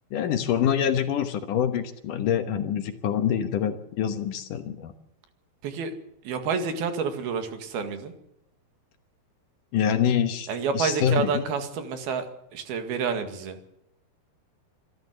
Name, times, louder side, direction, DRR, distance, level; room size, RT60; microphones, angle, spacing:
voice 1, 0.1-4.9 9.7-10.5 10.7-11.4, left 9 dB, 65° left, 8 dB, 2.5 m, -25 dB
voice 2, 6.2-8.1 10.5-13.6, right 5 dB, 75° right, 7 dB, 3.9 m, -29 dB
26.5 x 13.0 x 8.1 m, 0.82 s
omnidirectional pair, 4.4 m